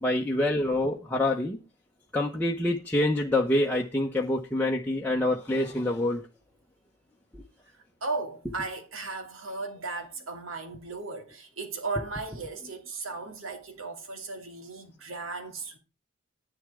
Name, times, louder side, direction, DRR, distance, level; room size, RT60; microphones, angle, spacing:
voice 1, 0.0-1.6 2.1-6.2 7.3-7.4, left 1 dB, 10° left, 1.0 m, -26 dB
voice 2, 8.0-15.8, right 3 dB, 80° right, 2.7 m, -36 dB
11.0 x 10.5 x 3.6 m
head